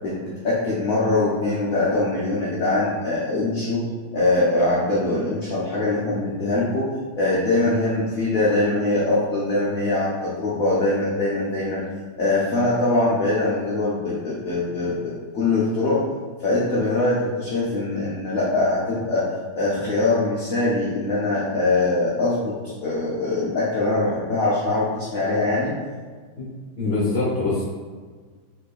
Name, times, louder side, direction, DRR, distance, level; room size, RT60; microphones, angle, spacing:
voice 1, 0.0-3.8 4.1-11.8 12.2-16.0 16.4-19.3 19.5-22.5 22.8-25.7, left 2 dB, 80° left, -7 dB, 0.7 m, -22 dB
voice 2, 26.8-27.6, left 3 dB, 15° left, -8 dB, 0.5 m, -23 dB
4.2 x 3.0 x 2.4 m, 1.5 s
omnidirectional pair, 2.3 m